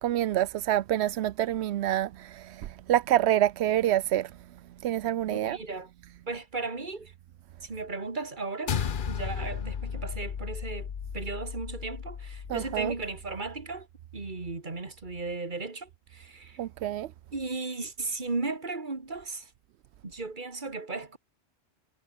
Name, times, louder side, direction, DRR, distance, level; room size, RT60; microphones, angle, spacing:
voice 1, 0.0-4.3 4.8-5.6 12.5-12.9 16.6-17.1, right 12 dB, 80° right, 0.9 m, -27 dB
voice 2, 5.3-5.9 6.3-7.1 7.6-8.8 9.1-13.9 14.1-16.6 17.3-19.5 20.0-21.2, right 3 dB, 45° right, 2.7 m, -36 dB
sound 1, 8.7-13.2, left 7 dB, 50° left, 1.0 m, -35 dB
omnidirectional pair, 1.1 m